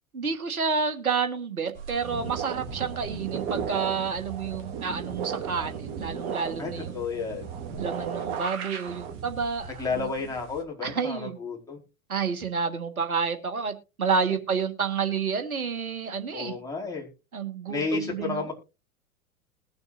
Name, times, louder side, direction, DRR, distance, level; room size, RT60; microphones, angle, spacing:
voice 1, 0.1-7.0 7.8-10.3 10.8-11.4 12.1-16.6 17.3-18.5, right 5 dB, 75° right, 8 dB, 1.8 m, -30 dB
sound 1, 1.7-10.6, right 6 dB, 45° right, 2.7 m, -35 dB
voice 2, 6.6-7.4 9.8-11.8 16.3-17.1 17.7-18.5, left 4 dB, 10° left, -2 dB, 4.8 m, -32 dB
21.0 x 7.0 x 2.6 m, 0.29 s
figure-of-eight pair, 95°, 43 cm